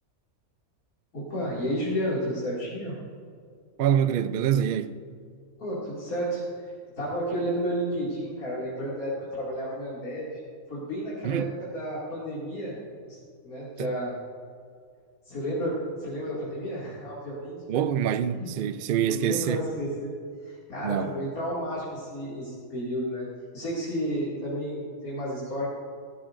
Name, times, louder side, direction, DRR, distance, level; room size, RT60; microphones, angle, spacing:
voice 1, 1.1-2.9 5.6-6.4 7.0-10.4 10.7-11.4 11.7-12.8 13.1-13.2 13.4-14.2 15.3-17.6 19.1-20.1 20.4-23.3 23.5-25.7, equal, 80° left, 3.0 m, -31 dB
voice 2, 3.8-5.0 11.2-11.5 13.8-13.9 17.7-19.6 20.8-21.1, right 9 dB, 65° right, 0.5 m, -25 dB
16.5 x 14.5 x 2.6 m
omnidirectional pair, 1.5 m